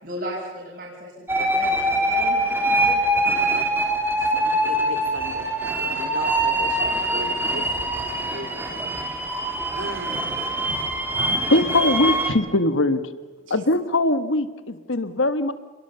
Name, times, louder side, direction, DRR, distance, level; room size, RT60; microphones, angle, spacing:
voice 1, 0.0-3.1 4.1-4.4, right 1 dB, 55° right, -5 dB, 6.2 m, -36 dB
sound 1, 1.3-12.3, right 1 dB, 10° right, 2.9 m, -23 dB
voice 2, 4.2-5.5 5.8-8.9 9.7-11.5 13.5-13.7, right 2 dB, 85° right, 8 dB, 3.0 m, -38 dB
voice 3, 11.1-13.0 13.5-15.5, left 2 dB, 80° left, 12 dB, 1.4 m, -21 dB
29.0 x 21.5 x 7.0 m, 1.3 s
head